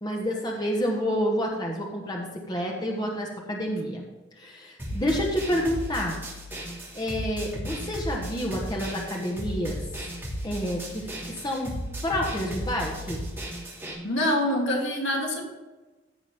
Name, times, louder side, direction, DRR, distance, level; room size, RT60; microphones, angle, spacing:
voice 1, 0.0-4.1 4.4-6.2 6.9-9.8 10.4-11.7 12.0-13.2, equal, 20° left, -1 dB, 1.3 m, -29 dB
sound 1, 4.8-13.9, equal, 10° right, 2.9 m, -35 dB
voice 2, 14.0-15.4, left 1 dB, 75° left, -2 dB, 2.8 m, -25 dB
15.5 x 6.1 x 3.5 m, 1.1 s
head